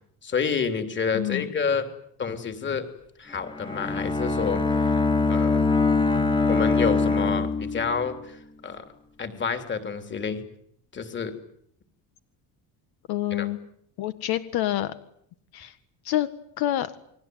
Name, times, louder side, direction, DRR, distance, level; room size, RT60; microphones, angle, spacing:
voice 1, 0.2-1.9 2.2-2.9 3.2-5.0 5.3-5.6 6.5-8.8 9.2-10.4 10.9-11.3 13.3-13.5, left 6 dB, 30° left, 8 dB, 3.3 m, -29 dB
voice 2, 1.1-1.5 13.1-13.6 14.0-14.9 15.5-15.7 16.1-16.3 16.6-16.9, left 14 dB, 75° left, 11 dB, 1.8 m, -27 dB
Bowed string instrument, 3.5-8.2, left 3 dB, 10° left, 1.9 m, -23 dB
29.5 x 21.5 x 9.5 m, 0.71 s
cardioid pair, 150°, 38 cm